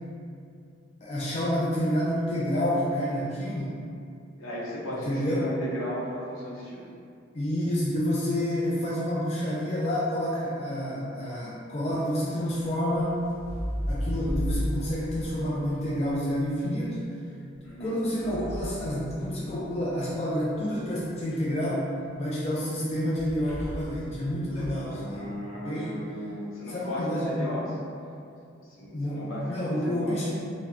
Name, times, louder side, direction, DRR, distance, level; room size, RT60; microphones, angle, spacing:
voice 1, 1.0-3.8 5.1-5.5 7.3-13.1 13.9-17.1 17.8-21.9 22.2-26.0 26.7-27.6 28.9-30.3, equal, 30° left, -6 dB, 0.3 m, -29 dB
voice 2, 4.4-7.0 17.6-18.0 24.7-27.7 28.7-30.2, equal, 80° left, -7 dB, 0.7 m, -36 dB
sound 1, 12.5-16.6 17.5-19.9 23.2-24.0 24.4-24.9, equal, 5° right, 1.1 m, -35 dB
3.5 x 2.1 x 2.3 m, 2.4 s
head